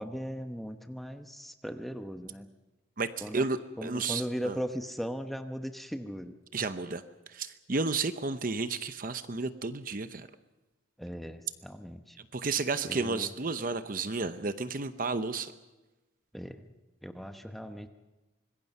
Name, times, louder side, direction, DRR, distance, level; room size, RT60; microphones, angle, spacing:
voice 1, 0.0-2.5 3.2-3.5 3.8-6.3 11.0-12.2 12.9-13.3 16.3-16.7 17.0-17.9, equal, ahead, 6 dB, 1.0 m, -38 dB
voice 2, 3.0-4.6 6.5-7.0 7.3-10.3 12.3-15.5, right 4 dB, 45° right, 11 dB, 0.8 m, -32 dB
25.5 x 21.0 x 5.5 m, 1.1 s
head